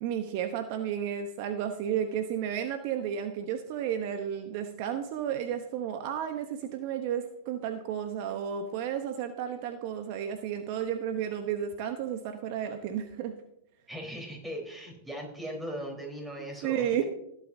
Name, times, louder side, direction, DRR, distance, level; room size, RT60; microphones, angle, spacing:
voice 1, 0.0-13.3 16.6-17.0, right 9 dB, 55° right, 7 dB, 0.9 m, -32 dB
voice 2, 13.9-17.0, equal, 10° right, 0 dB, 4.1 m, -39 dB
17.5 x 8.3 x 2.7 m, 0.80 s
hypercardioid pair, 110°, 0 cm